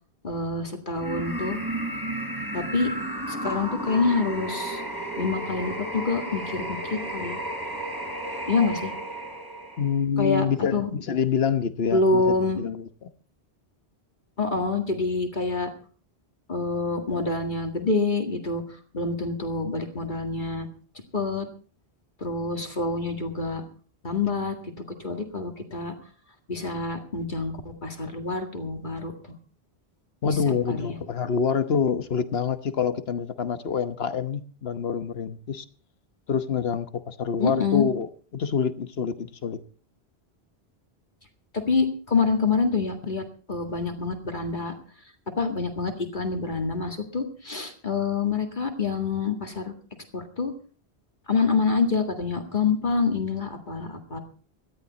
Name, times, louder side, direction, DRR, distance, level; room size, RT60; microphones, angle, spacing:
voice 1, 0.2-1.6 2.5-2.9 3.3-4.8 5.2-7.4 8.5-8.9 10.2-10.9 11.9-12.6 14.4-15.7 16.5-18.6 18.9-20.7 21.1-21.5 22.2-23.6 24.0-24.7 25.0-25.9 26.5-29.1 30.2-30.4 30.7-31.0 37.4-37.9 41.5-43.2 43.5-44.7 45.4-49.7 50.1-50.5 51.3-54.2, left 4 dB, 45° left, 2.1 m, -26 dB
sound 1, 1.0-10.0, right 1 dB, 20° right, 3.4 m, -33 dB
voice 2, 9.8-12.9 30.2-35.6 36.3-39.6, left 6 dB, 70° left, 1.3 m, -26 dB
17.5 x 13.0 x 4.1 m
omnidirectional pair, 1.1 m